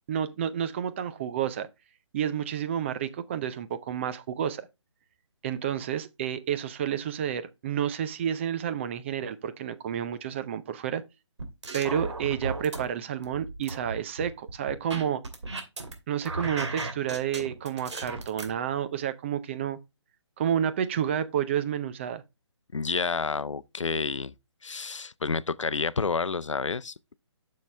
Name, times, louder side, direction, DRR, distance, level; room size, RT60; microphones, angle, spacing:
voice 1, 0.1-1.7 2.1-4.7 5.4-11.0 11.7-15.2 16.1-19.8 20.4-22.2, right 9 dB, 25° right, 0.5 m, -30 dB
sound 1, 11.4-12.8 13.2-15.9 16.2-18.5, right 3 dB, 70° right, 2.4 m, -35 dB
voice 2, 22.7-24.3 24.6-27.1, left 4 dB, 85° left, 0.6 m, -29 dB
8.2 x 6.5 x 3.3 m
figure-of-eight pair, 145°, 15 cm